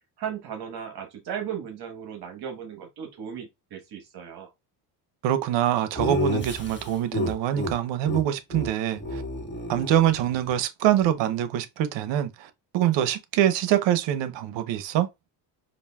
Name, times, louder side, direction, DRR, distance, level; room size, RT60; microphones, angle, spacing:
voice 1, 0.2-4.5, right 8 dB, 55° right, 1.2 m, -36 dB
voice 2, 5.2-9.2 9.7-15.1, right 11 dB, 75° right, 0.7 m, -24 dB
Laughter, 6.0-7.7 8.0-8.2 8.5-8.7 9.0-10.5, left 1 dB, 25° left, 1.4 m, -30 dB
4.9 x 2.5 x 2.3 m
cardioid pair, 110°, 45 cm